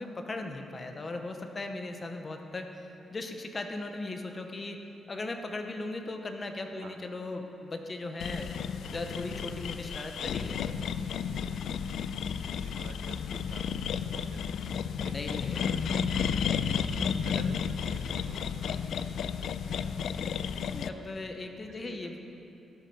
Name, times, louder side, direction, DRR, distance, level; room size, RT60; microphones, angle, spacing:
voice 1, 0.0-2.8 3.1-4.8 5.1-8.5 8.9-10.8 15.0-15.7 20.7-22.2, left 2 dB, 25° left, 5 dB, 0.8 m, -38 dB
sound 1, 8.2-20.9, left 7 dB, 70° left, 0.3 m, -32 dB
voice 2, 12.2-16.4 16.9-20.3 20.8-21.3 21.8-22.2, right 5 dB, 80° right, 5 dB, 0.8 m, -51 dB
13.0 x 7.5 x 5.4 m, 2.9 s
wide cardioid pair, 150°, 0 cm